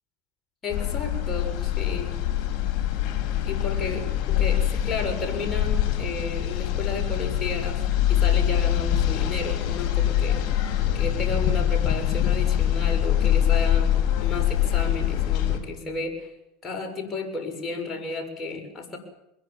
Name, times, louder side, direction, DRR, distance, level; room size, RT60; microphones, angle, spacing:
voice 1, 0.6-2.2 3.5-16.3 16.6-19.0, left 3 dB, 25° left, 2 dB, 7.4 m, -33 dB
sound 1, 0.7-15.6, left 11 dB, 55° left, 5.7 m, -24 dB
22.5 x 22.0 x 7.4 m, 0.86 s
hypercardioid pair, 95°, 0 cm